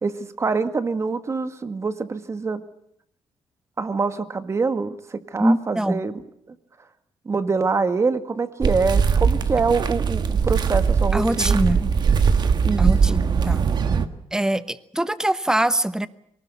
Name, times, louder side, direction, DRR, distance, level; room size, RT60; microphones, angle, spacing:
voice 1, 0.0-2.6 3.8-6.1 6.5-6.6 7.2-11.9 12.6-13.2, right 4 dB, 30° right, 10 dB, 1.7 m, -25 dB
voice 2, 5.4-6.0 11.1-11.8 12.8-13.6 14.3-16.1, right 1 dB, 5° right, 13 dB, 1.0 m, -23 dB
sound 1, 8.6-14.1, right 6 dB, 45° right, 1.5 m, -20 dB
23.0 x 19.5 x 8.4 m, 0.71 s
cardioid pair, 125°, 10 cm